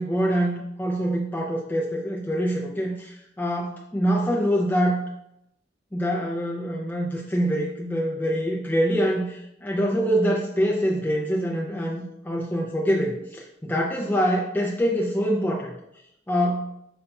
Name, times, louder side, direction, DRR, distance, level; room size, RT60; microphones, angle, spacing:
voice 1, 0.0-5.0 5.9-15.7 16.3-16.7, equal, 10° left, -3 dB, 0.4 m, -25 dB
5.2 x 2.3 x 4.0 m, 0.79 s
head